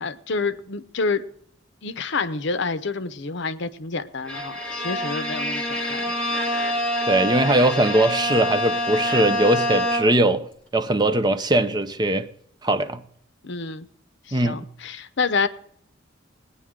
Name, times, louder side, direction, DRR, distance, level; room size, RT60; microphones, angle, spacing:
voice 1, 0.0-1.2 1.8-6.1 13.4-13.9 14.3-15.5, left 4 dB, 65° left, 0.7 m, -28 dB
Bowed string instrument, 4.3-10.3, left 1 dB, 5° left, 2.1 m, -26 dB
voice 2, 7.1-10.5 10.7-12.3 12.6-13.0 14.3-14.6, right 1 dB, 20° right, 0.5 m, -20 dB
19.5 x 9.6 x 3.7 m
head